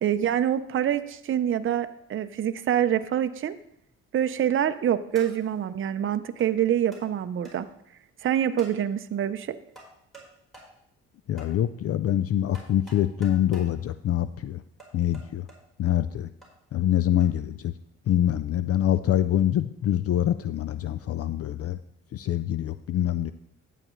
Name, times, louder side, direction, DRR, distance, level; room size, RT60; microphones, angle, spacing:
voice 1, 0.0-3.6 4.1-7.7 8.2-9.6, right 10 dB, 45° right, 10 dB, 0.6 m, -26 dB
sound 1, 4.2-4.6 5.1-5.6 6.4-6.5 6.9-7.1 7.4-7.6 8.6-8.8 9.8-10.3 10.5-10.7 11.4-11.5 12.5-13.7 14.8-15.6 16.4-16.5 17.2-17.3, right 2 dB, ahead, 4.3 m, -48 dB
voice 2, 11.3-14.6 14.9-15.5 15.8-16.3 16.7-17.7 18.1-21.8 22.1-23.3, left 11 dB, 50° left, 13 dB, 0.4 m, -25 dB
11.0 x 8.9 x 3.1 m, 0.73 s
cardioid pair, 90°, 30 cm